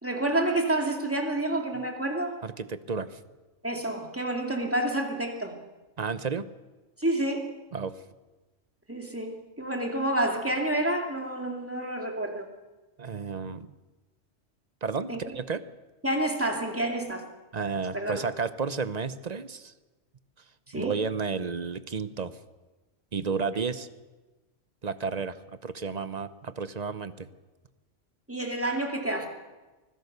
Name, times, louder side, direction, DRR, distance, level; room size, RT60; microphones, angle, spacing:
voice 1, 0.0-2.4 3.6-5.5 7.0-7.5 8.9-12.5 15.1-15.2 16.0-17.2 17.9-18.2 20.7-21.0 23.5-23.6 28.3-29.3, right 1 dB, 10° right, 2 dB, 2.5 m, -29 dB
voice 2, 2.4-3.2 6.0-6.5 7.7-8.0 13.0-13.7 14.8-15.6 17.5-19.7 20.7-22.4 23.1-23.9 24.8-25.4 25.6-27.3, right 5 dB, 40° right, 13 dB, 0.8 m, -32 dB
24.5 x 16.0 x 6.7 m, 1.2 s
omnidirectional pair, 1.3 m